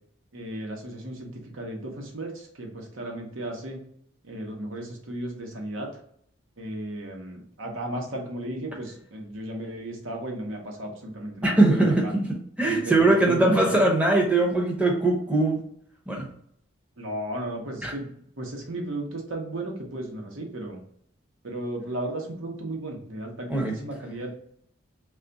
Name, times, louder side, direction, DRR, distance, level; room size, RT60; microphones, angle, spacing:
voice 1, 0.3-3.8 4.2-5.9 6.6-12.1 12.6-13.8 17.0-18.1 18.4-20.8 21.4-24.3, right 1 dB, 80° right, 1 dB, 0.9 m, -35 dB
voice 2, 11.4-15.6 16.1-16.3 17.8-17.9 23.5-23.7, right 2 dB, 5° right, 0 dB, 0.6 m, -21 dB
3.3 x 2.4 x 3.9 m, 0.66 s
head